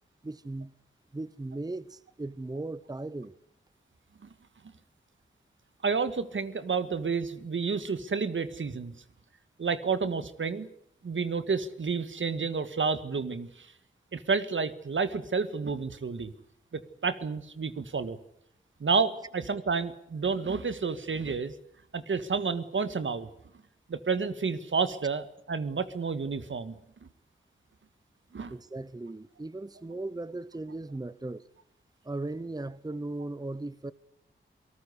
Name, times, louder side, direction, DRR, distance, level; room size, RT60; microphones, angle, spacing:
voice 1, 0.2-0.7 1.1-3.4 28.5-31.5 32.0-33.9, right 2 dB, 20° right, 0.9 m, -37 dB
voice 2, 5.8-9.0 9.6-10.7 11.0-13.7 14.1-16.3 16.7-18.2 18.8-21.5 21.9-23.3 23.9-26.8 28.3-28.5, right 5 dB, 65° right, 1.8 m, -30 dB
28.0 x 19.0 x 8.2 m
wide cardioid pair, 80°, 21 cm